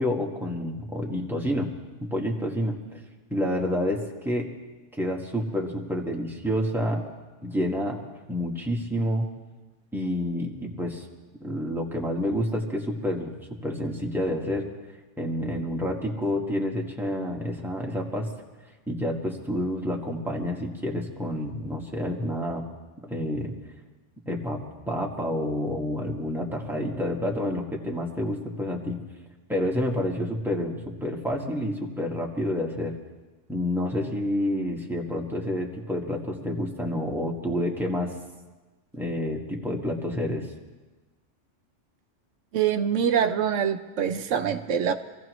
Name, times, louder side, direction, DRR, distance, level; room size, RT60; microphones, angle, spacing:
voice 1, 0.0-1.7 2.0-3.0 3.3-4.5 4.9-7.0 7.4-8.0 8.3-9.3 9.9-11.0 11.4-13.4 13.6-14.7 15.2-18.3 18.9-22.6 23.0-23.5 24.3-29.0 29.5-32.9 33.5-38.1 38.9-40.5, left 1 dB, ahead, -1 dB, 1.6 m, -29 dB
voice 2, 42.5-44.9, right 8 dB, 80° right, 8 dB, 1.0 m, -24 dB
25.5 x 16.0 x 3.1 m, 1.2 s
omnidirectional pair, 1.3 m